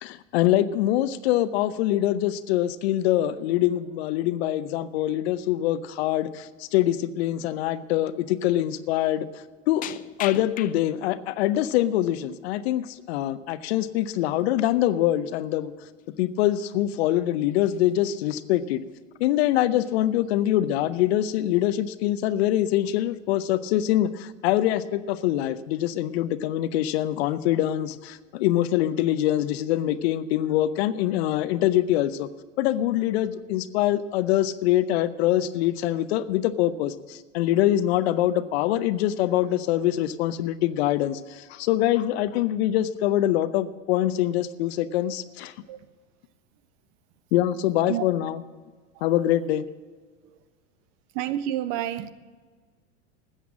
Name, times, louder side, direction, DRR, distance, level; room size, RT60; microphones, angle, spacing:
voice 1, 0.0-9.3 9.7-9.8 10.2-15.7 16.2-18.8 19.2-32.3 32.6-45.5 47.3-48.4 49.0-49.6, left 13 dB, 55° left, 0.8 m, -24 dB
sound 1, 5.7-5.9 6.3-6.6 7.1-7.2 8.2-8.3 8.7-8.8 9.8-11.2 11.6-12.3 13.7-13.9 14.2-14.3 14.7-14.9 15.6-15.7 16.0-16.2 16.7-17.2 17.5-18.1 18.6-19.1 19.4-19.5 19.8-20.5 20.9-21.3, left 13 dB, 25° left, 0.4 m, -42 dB
voice 2, 51.1-52.1, right 12 dB, 45° right, 0.8 m, -30 dB
14.0 x 8.2 x 7.3 m
hypercardioid pair, 90°, 38 cm